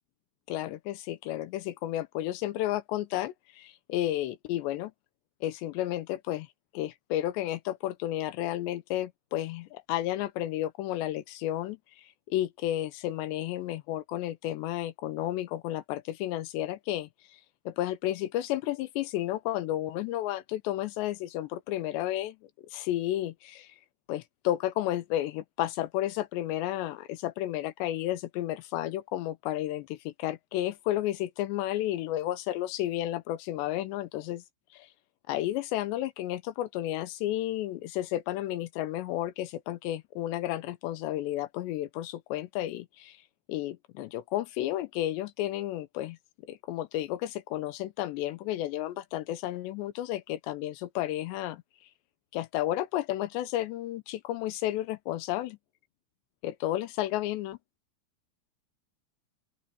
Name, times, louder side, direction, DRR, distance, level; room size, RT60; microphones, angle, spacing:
voice 1, 0.5-4.9 5.4-6.5 6.7-17.4 17.7-23.7 24.1-34.4 34.7-34.9 35.3-43.2 43.5-46.2 46.5-51.6 52.3-55.6 56.4-57.6, left 14 dB, 80° left, 2.9 m, -32 dB
open air
omnidirectional pair, 5.2 m